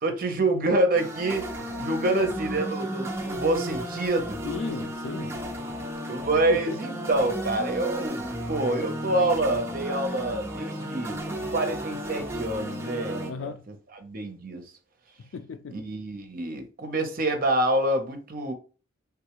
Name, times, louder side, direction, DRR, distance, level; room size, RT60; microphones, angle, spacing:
voice 1, 0.0-4.4 6.1-13.5 14.0-14.7 15.7-18.5, right 2 dB, 50° right, 0.7 m, -27 dB
sound 1, 0.9-13.3, equal, 15° right, 0.6 m, -34 dB
voice 2, 2.0-2.4 4.4-5.4 6.5-6.8 13.3-13.7 15.2-15.8, left 5 dB, 85° left, 0.4 m, -35 dB
3.5 x 2.3 x 3.0 m
head